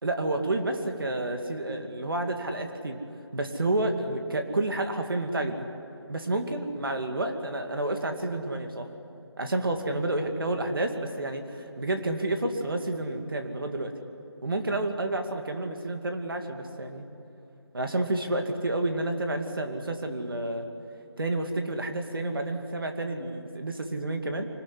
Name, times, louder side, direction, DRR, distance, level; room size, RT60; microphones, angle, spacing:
voice 1, 0.0-3.0 3.3-5.7 6.1-8.9 9.4-13.9 14.4-17.0 17.7-20.7 21.2-24.5, right 2 dB, 55° right, 5 dB, 2.4 m, -30 dB
25.5 x 20.5 x 9.9 m, 2.7 s
figure-of-eight pair, 175°, 14 cm